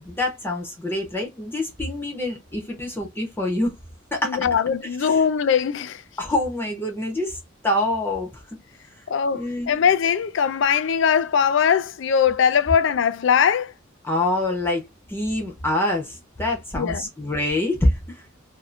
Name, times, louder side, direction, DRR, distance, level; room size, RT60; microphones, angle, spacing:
voice 1, 0.0-3.7 4.1-4.4 5.0-5.2 6.2-7.4 7.6-8.4 9.3-9.8 14.0-14.8 15.1-18.2, left 1 dB, 10° left, 0.8 m, -25 dB
voice 2, 4.2-6.0 9.1-13.7 16.7-17.0, left 7 dB, 70° left, 0.4 m, -21 dB
2.7 x 2.6 x 2.4 m
head